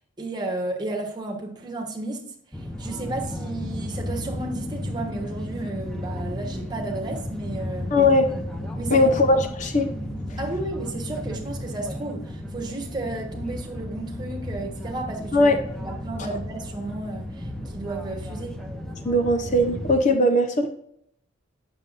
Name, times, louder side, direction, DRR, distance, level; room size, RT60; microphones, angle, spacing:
voice 1, 0.2-7.9 8.7-9.1 10.4-15.5 15.8-18.6, right 2 dB, 20° right, 0 dB, 1.2 m, -33 dB
sound 1, 2.5-20.0, left 1 dB, 5° left, 0.7 m, -34 dB
voice 2, 7.9-8.3 8.9-9.9 15.3-15.6 19.0-20.7, left 1 dB, 35° left, 7 dB, 0.6 m, -19 dB
8.7 x 6.8 x 2.5 m, 0.71 s
head